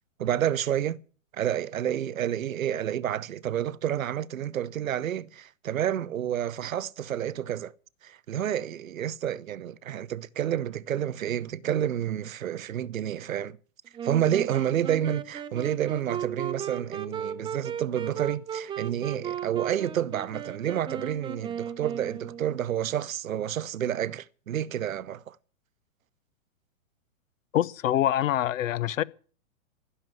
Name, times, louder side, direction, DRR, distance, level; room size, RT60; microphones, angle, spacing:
voice 1, 0.2-1.0 1.3-7.7 8.0-13.6 14.0-25.4, right 10 dB, 90° right, 0.8 m, -29 dB
Wind instrument woodwind instrument, 13.9-22.7, right 8 dB, 10° right, 0.8 m, -36 dB
voice 2, 27.5-29.0, left 12 dB, 75° left, 0.9 m, -25 dB
15.5 x 6.8 x 9.3 m
hypercardioid pair, 130°, 40 cm